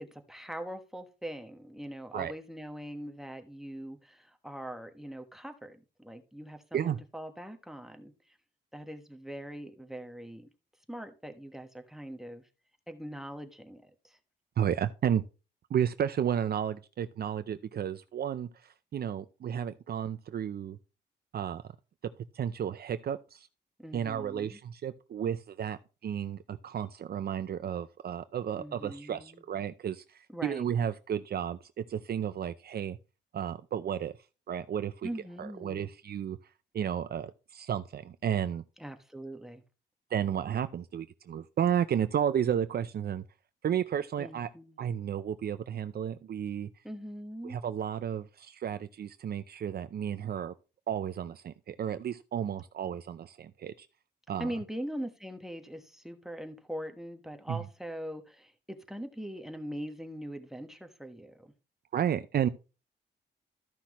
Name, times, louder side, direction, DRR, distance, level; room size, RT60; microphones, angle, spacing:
voice 1, 0.0-8.1 8.7-10.5 10.9-12.4 12.9-14.2 23.8-24.6 28.6-29.4 30.3-30.7 35.0-35.9 38.8-39.6 44.2-44.8 46.8-47.6 54.4-61.5, equal, ahead, 1.2 m, -42 dB
voice 2, 14.6-15.2 15.7-20.8 21.3-21.6 22.3-23.5 23.9-33.0 33.3-34.1 34.5-35.1 35.4-36.4 36.7-38.6 40.1-43.2 43.6-44.5 44.8-46.7 47.4-50.5 50.9-53.9 54.3-54.5 57.5-57.6 61.9-62.5, right 9 dB, 60° right, 0.5 m, -32 dB
13.5 x 5.8 x 3.0 m
cardioid pair, 95°, 18 cm